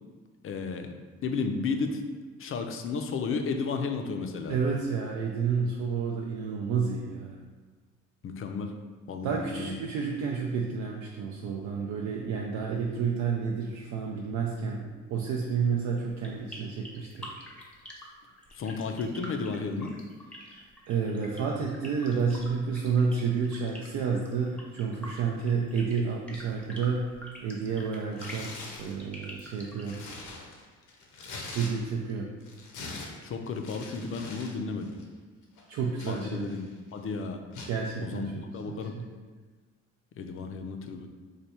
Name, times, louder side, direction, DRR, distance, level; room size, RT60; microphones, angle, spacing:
voice 1, 0.4-2.0 2.4-4.5 8.2-8.7 9.1-9.7 18.5-20.0 33.2-34.9 36.1-37.4 38.0-38.9 40.2-41.1, left 4 dB, 45° left, 5 dB, 0.4 m, -33 dB
voice 2, 4.5-7.4 9.2-17.3 20.4-27.1 27.4-30.0 31.5-32.3 35.7-36.5 37.7-38.4 38.7-39.0, right 5 dB, 70° right, -1 dB, 0.5 m, -30 dB
sound 1, 16.1-30.0, equal, 5° left, 0.6 m, -46 dB
Tearing, 28.1-28.9 29.5-32.1 32.4-34.6 34.8-35.0 35.6-36.7 37.5-37.8, left 3 dB, 80° left, 0.7 m, -43 dB
3.3 x 2.2 x 4.2 m, 1.4 s
cardioid pair, 90°, 30 cm